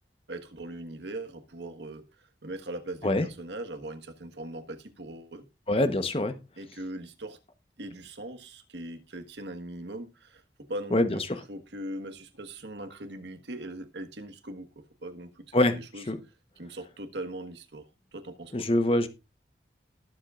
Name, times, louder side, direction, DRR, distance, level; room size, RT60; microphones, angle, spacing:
voice 1, 0.3-5.4 6.6-7.4 7.8-11.2 11.5-16.1 16.6-17.8 18.1-18.7, right 1 dB, 80° right, 1.4 m, -40 dB
voice 2, 5.7-6.4 10.9-11.4 15.5-15.8 16.1-16.2 18.5-19.1, left 1 dB, 30° left, 1.0 m, -24 dB
19.5 x 7.4 x 2.5 m
head